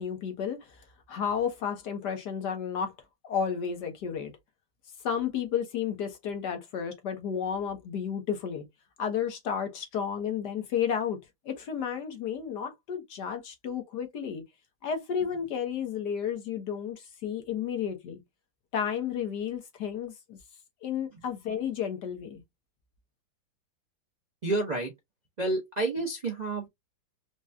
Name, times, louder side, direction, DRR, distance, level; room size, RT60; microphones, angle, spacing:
voice 1, 0.0-2.9 3.2-4.3 5.0-8.6 9.0-11.2 11.4-14.4 14.8-18.2 18.7-20.4 20.8-22.4, left 7 dB, 60° left, 1.4 m, -32 dB
voice 2, 24.4-24.9 25.4-26.7, right 2 dB, 80° right, 0.3 m, -29 dB
4.9 x 2.2 x 2.6 m
omnidirectional pair, 2.3 m